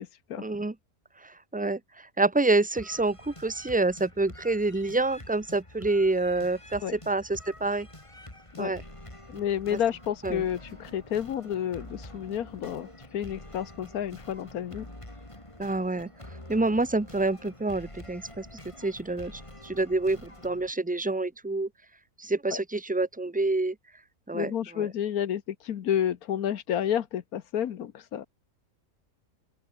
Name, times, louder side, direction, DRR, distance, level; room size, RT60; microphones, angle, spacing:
voice 1, 0.4-0.7 1.2-1.8 2.2-7.9 8.6-8.8 10.2-10.4 15.6-16.1 16.5-18.5 18.8-21.7 22.2-23.7 24.3-24.9, right 2 dB, 10° right, 0.4 m, -27 dB
sound 1, 2.8-20.7, left 1 dB, 20° left, 4.3 m, -47 dB
voice 2, 9.3-14.9 22.5-22.6 24.3-28.2, left 9 dB, 80° left, 1.5 m, -30 dB
open air
omnidirectional pair, 1.5 m